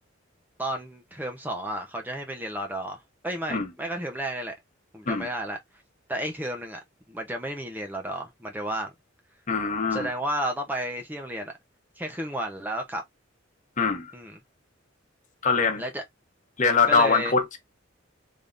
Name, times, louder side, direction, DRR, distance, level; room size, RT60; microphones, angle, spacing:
voice 1, 0.6-4.5 4.9-5.6 6.1-6.8 7.1-8.9 9.9-11.5 12.0-13.0 14.1-14.4 15.8-16.0 16.9-17.3, right 1 dB, 10° right, 0.7 m, -32 dB
voice 2, 9.5-10.1 13.8-14.1 15.4-15.8 16.6-17.6, left 4 dB, 40° left, 1.1 m, -23 dB
3.6 x 3.5 x 2.5 m
head